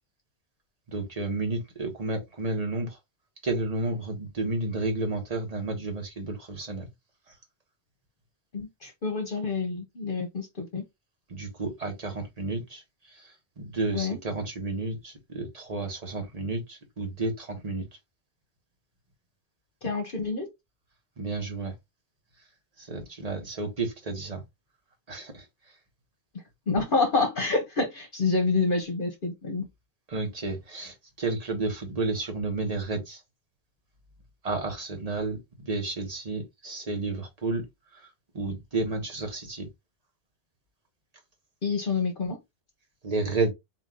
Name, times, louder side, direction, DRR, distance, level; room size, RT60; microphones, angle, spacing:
voice 1, 0.9-3.0 3.4-6.9 11.3-12.8 13.1-17.9 21.2-21.7 22.8-24.4 25.1-25.5 30.1-33.2 34.4-37.6 37.9-39.7 43.0-43.5, right 2 dB, 40° right, 1.3 m, -31 dB
voice 2, 8.5-10.8 13.9-14.2 19.8-20.5 26.7-29.7 41.6-42.4, left 4 dB, 55° left, 1.1 m, -27 dB
4.3 x 2.7 x 3.6 m
omnidirectional pair, 1.1 m